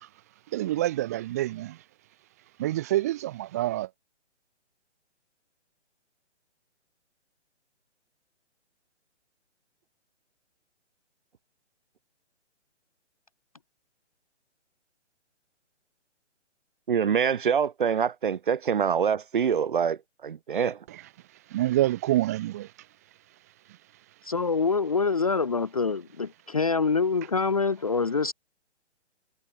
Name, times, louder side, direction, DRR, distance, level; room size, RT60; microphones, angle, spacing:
voice 1, 0.5-1.8 2.6-3.9 20.9-21.0 21.5-22.7, right 15 dB, 15° right, 0.9 m, -27 dB
voice 2, 16.9-20.8, right 7 dB, 45° right, 0.9 m, -25 dB
voice 3, 24.3-28.3, left 4 dB, 30° left, 0.5 m, -25 dB
hypercardioid pair, 170°, 36 cm